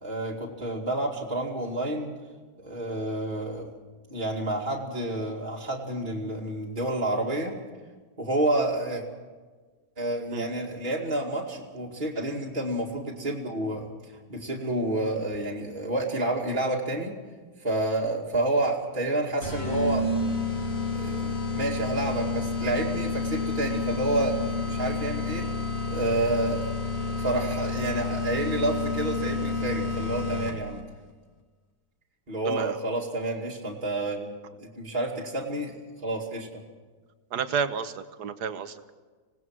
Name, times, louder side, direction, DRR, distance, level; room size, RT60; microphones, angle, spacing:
voice 1, 0.0-2.1 2.6-3.7 4.1-7.6 8.2-9.0 10.0-17.2 17.6-20.1 20.9-25.5 25.9-26.7 27.1-30.8 32.3-34.3 34.6-36.6, right 1 dB, 30° right, -3 dB, 2.5 m, -29 dB
sound 1, 19.4-30.8, left 3 dB, 40° left, 2.3 m, -30 dB
voice 2, 32.5-32.8 37.3-38.9, right 6 dB, 70° right, 10 dB, 1.6 m, -31 dB
26.0 x 18.5 x 6.2 m, 1.4 s
omnidirectional pair, 1.8 m